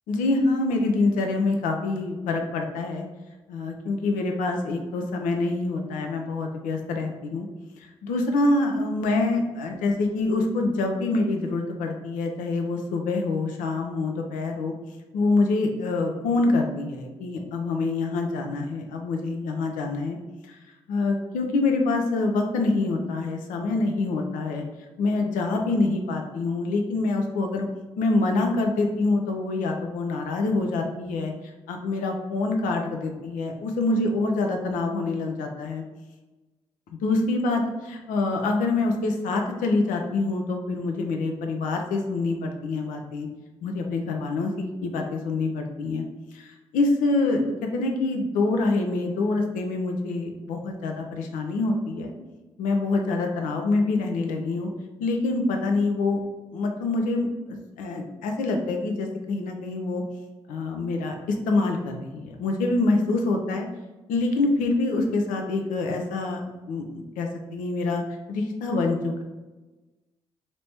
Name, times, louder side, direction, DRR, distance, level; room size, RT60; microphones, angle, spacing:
voice 1, 0.1-3.1 3.5-7.5 7.8-14.7 15.1-20.2 20.5-20.6 20.9-24.7 25.0-27.7 28.0-31.3 31.7-35.8 37.0-43.3 43.6-46.0 46.3-47.4 47.7-52.1 52.6-54.7 55.0-56.2 56.5-57.3 57.8-60.0 60.5-63.7 64.1-66.4 66.7-68.0 68.3-69.2, left 3 dB, 80° left, 3 dB, 0.5 m, -26 dB
2.9 x 2.8 x 3.3 m, 1.2 s
hypercardioid pair, 45°, 13 cm